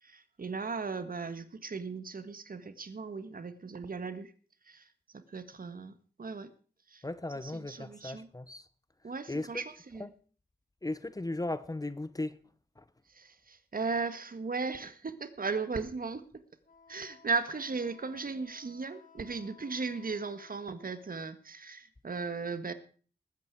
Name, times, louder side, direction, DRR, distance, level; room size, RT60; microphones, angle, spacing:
voice 1, 0.0-4.3 4.7-4.9 5.1-6.5 6.9-7.0 7.3-8.3 9.0-10.1 13.1-16.3 16.9-22.7, right 4 dB, 55° right, 1.7 m, -37 dB
voice 2, 7.0-8.6 9.3-9.5 10.0-10.1 10.8-12.3 12.8-12.9, left 2 dB, 20° left, 0.9 m, -36 dB
Wind instrument woodwind instrument, 16.6-21.1, left 5 dB, 50° left, 2.1 m, -59 dB
20.0 x 9.2 x 4.8 m
cardioid pair, 60°, 18 cm